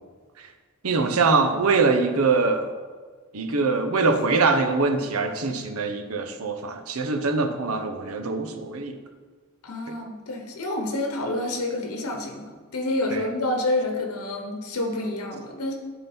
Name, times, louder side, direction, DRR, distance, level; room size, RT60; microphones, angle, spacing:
voice 1, 0.8-2.7 3.3-9.0 13.1-13.2, right 4 dB, 80° right, 6 dB, 0.7 m, -23 dB
voice 2, 9.6-15.7, left 2 dB, 90° left, 2 dB, 0.9 m, -28 dB
10.0 x 4.0 x 4.3 m, 1.5 s
head